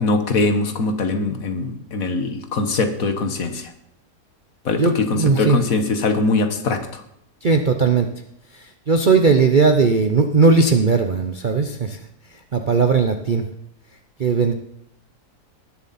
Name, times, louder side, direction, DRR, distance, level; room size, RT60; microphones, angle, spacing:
voice 1, 0.0-3.7 4.6-7.0, left 3 dB, 55° left, 7 dB, 1.6 m, -22 dB
voice 2, 4.8-5.6 7.4-8.1 8.9-12.0 12.5-13.5 14.2-14.5, right 4 dB, 45° right, 5 dB, 0.6 m, -17 dB
19.5 x 7.2 x 4.2 m, 0.78 s
omnidirectional pair, 1.8 m